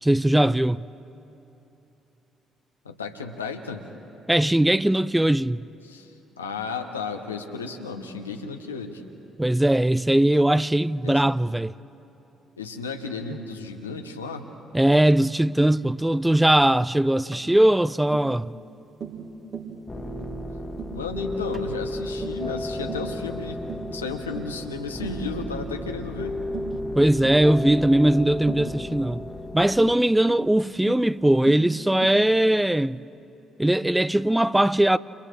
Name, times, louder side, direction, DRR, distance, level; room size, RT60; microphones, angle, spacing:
voice 1, 0.0-0.9 4.3-5.7 9.4-11.7 14.7-18.5 26.9-29.2 29.5-33.0 33.6-35.0, right 1 dB, 10° right, 0.4 m, -20 dB
voice 2, 2.8-3.8 5.8-9.0 11.0-11.2 12.6-14.5 20.9-23.6 23.9-26.3, left 4 dB, 90° left, 1.1 m, -33 dB
Tap, 17.3-17.5 18.1-18.3 19.0-19.2 19.5-19.8 20.2-20.4 20.8-21.0 21.5-21.7 22.2-22.5 22.9-23.1 23.7-23.9 24.3-24.6 25.0-25.2 25.7-25.9 26.5-26.8 27.2-27.4 28.5-28.7 29.8-30.1 30.9-31.1 31.5-31.7 32.0-32.3, right 8 dB, 55° right, 2.8 m, -37 dB
sound 1, 19.9-30.0, left 1 dB, 20° left, 1.6 m, -33 dB
29.5 x 29.0 x 3.4 m
figure-of-eight pair, 45°, 0 cm